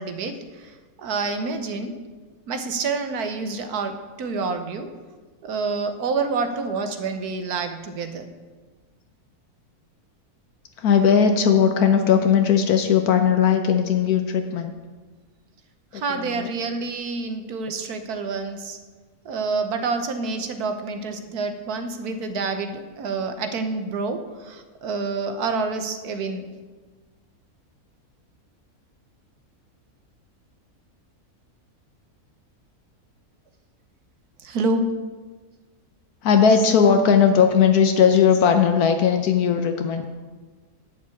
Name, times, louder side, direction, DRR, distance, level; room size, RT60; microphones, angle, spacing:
voice 1, 0.0-2.0 2.5-4.9 5.4-8.3 15.9-18.8 19.2-26.5 34.4-34.9, right 4 dB, 90° right, 8 dB, 1.5 m, -28 dB
voice 2, 10.8-14.7 15.9-16.5 36.2-40.0, left 7 dB, 80° left, 6 dB, 1.3 m, -18 dB
11.0 x 5.8 x 8.4 m, 1.3 s
omnidirectional pair, 1.6 m